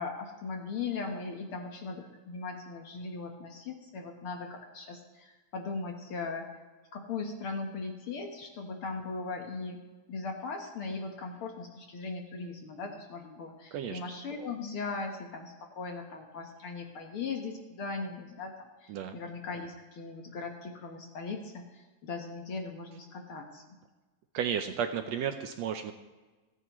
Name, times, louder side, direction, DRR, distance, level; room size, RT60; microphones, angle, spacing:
voice 1, 0.0-6.5 6.9-9.8 10.1-23.6, left 4 dB, 55° left, 3 dB, 1.9 m, -39 dB
voice 2, 24.3-25.9, right 8 dB, 70° right, 7 dB, 1.7 m, -33 dB
28.5 x 9.7 x 3.1 m, 1.2 s
omnidirectional pair, 3.4 m